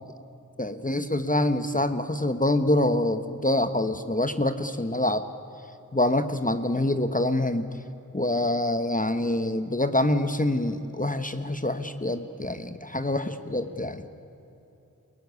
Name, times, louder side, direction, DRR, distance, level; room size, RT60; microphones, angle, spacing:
voice 1, 0.6-5.3 5.9-7.7 8.1-14.0, left 1 dB, 25° left, 10 dB, 1.2 m, -26 dB
28.0 x 17.5 x 9.6 m, 3.0 s
wide cardioid pair, 60°, 33 cm